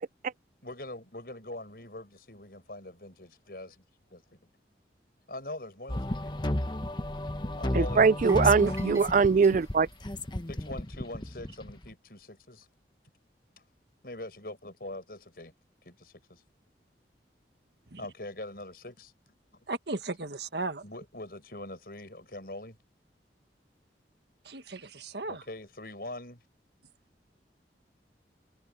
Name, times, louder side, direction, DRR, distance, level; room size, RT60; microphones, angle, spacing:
voice 1, 0.6-3.8 4.1-4.4 5.3-6.4 7.6-8.1 10.5-12.7 13.6-13.7 14.0-15.5 15.8-16.4 18.0-19.1 20.8-22.8 25.3-26.4, left 1 dB, 55° left, 7.2 m, -43 dB
sound 1, 5.9-11.9, left 1 dB, 25° left, 1.1 m, -33 dB
voice 2, 7.8-9.9, right 5 dB, 45° right, 0.3 m, -22 dB
sound 2, 8.3-11.3 11.6-11.8 12.2-12.3, right 2 dB, 20° right, 1.8 m, -51 dB
voice 3, 19.7-20.8 24.5-25.4, right 3 dB, 70° right, 1.6 m, -36 dB
head